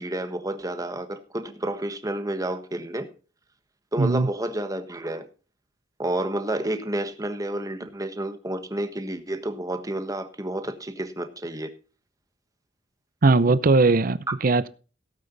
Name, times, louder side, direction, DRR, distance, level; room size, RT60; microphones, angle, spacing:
voice 1, 0.0-3.1 3.9-5.3 6.0-11.7 14.3-14.4, right 1 dB, 20° right, 1.3 m, -30 dB
voice 2, 4.0-4.3 13.2-14.7, right 3 dB, 50° right, 0.6 m, -19 dB
16.5 x 8.6 x 4.0 m
head